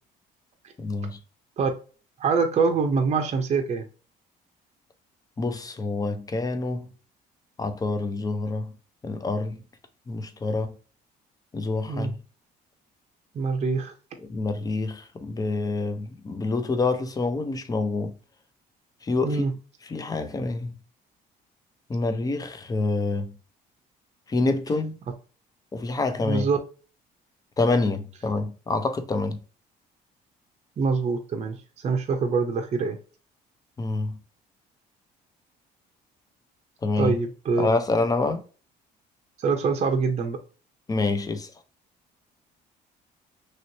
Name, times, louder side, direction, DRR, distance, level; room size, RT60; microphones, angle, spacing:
voice 1, 0.8-1.2 5.4-6.9 7.6-8.7 9.0-9.6 10.1-10.7 11.5-12.2 14.3-18.1 19.0-19.4 19.9-20.7 21.9-23.3 24.3-25.0 25.7-26.5 27.6-29.4 33.8-34.2 36.8-37.1 37.6-38.4 40.9-41.5, left 3 dB, 20° left, 0.6 m, -27 dB
voice 2, 2.2-3.8 11.9-12.1 13.3-13.9 19.2-19.5 26.2-26.6 30.8-33.0 37.0-37.7 39.4-40.4, right 4 dB, 40° right, 0.6 m, -24 dB
3.0 x 3.0 x 2.7 m
cardioid pair, 110°, 17 cm